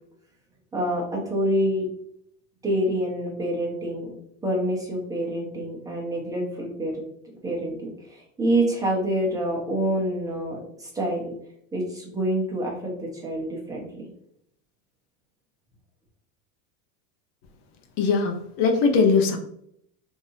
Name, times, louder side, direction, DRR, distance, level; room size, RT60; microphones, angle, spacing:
voice 1, 0.7-1.9 2.6-4.1 4.4-6.9 7.4-11.3 11.7-14.0, right 1 dB, 10° right, -3 dB, 0.7 m, -27 dB
voice 2, 18.0-19.4, left 5 dB, 55° left, 4 dB, 0.7 m, -20 dB
3.3 x 2.7 x 2.6 m, 0.71 s
supercardioid pair, 155°, 37 cm